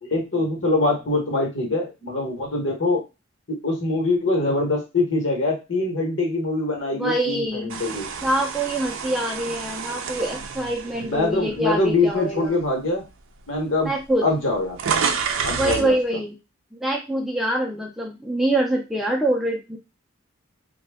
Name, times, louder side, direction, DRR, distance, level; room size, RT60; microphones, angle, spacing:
voice 1, 0.1-3.0 3.6-8.1 10.9-13.0 13.5-13.9 14.2-15.0 15.4-15.9, left 2 dB, 60° left, 0 dB, 1.1 m, -23 dB
voice 2, 6.9-7.7 8.2-12.6 13.8-14.3 15.6-16.3 16.7-19.8, right 1 dB, ahead, -1 dB, 0.4 m, -25 dB
sound 1, 7.7-11.9 12.5-12.7 13.6-13.7 13.9-15.9, right 6 dB, 75° right, 0.4 m, -29 dB
2.7 x 2.2 x 3.4 m, 0.26 s
head